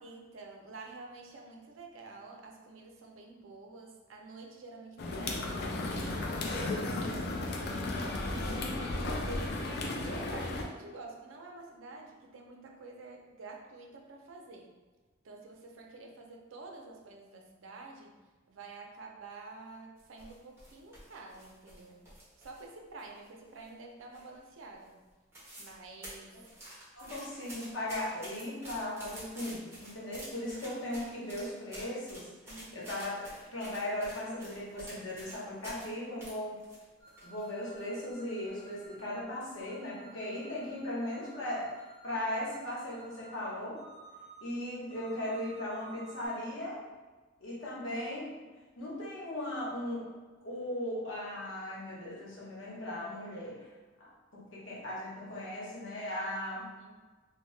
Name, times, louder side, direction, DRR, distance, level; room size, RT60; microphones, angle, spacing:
voice 1, 0.0-6.3 6.8-8.1 9.0-9.7 10.0-14.7 15.2-18.2 18.5-22.0 22.4-25.0 25.6-26.4 27.1-27.2 32.5-33.0 56.6-57.0, right 3 dB, 80° right, 1 dB, 0.5 m, -49 dB
sound 1, 5.0-10.6, left 2 dB, 55° left, 0.4 m, -34 dB
voice 2, 7.8-8.7 26.3-26.4 26.9-36.6 37.2-43.8 44.4-46.8 47.4-48.3 48.8-50.0 50.4-53.7 54.0-54.1 54.5-56.7, left 1 dB, 80° left, -5 dB, 0.9 m, -38 dB
sound 2, 20.0-22.7 23.0-23.8 24.1-24.5 24.8-24.9 25.1-25.8 26.0-35.9 36.2-37.4 37.8-37.9 38.5-38.9 39.3-39.5, right 1 dB, 15° right, 0.9 m, -49 dB
sound 3, 37.0-39.1 39.6-43.3 43.7-44.4 44.9-46.3, right 3 dB, 25° left, 1.4 m, -55 dB
2.7 x 2.1 x 3.1 m, 1.3 s
head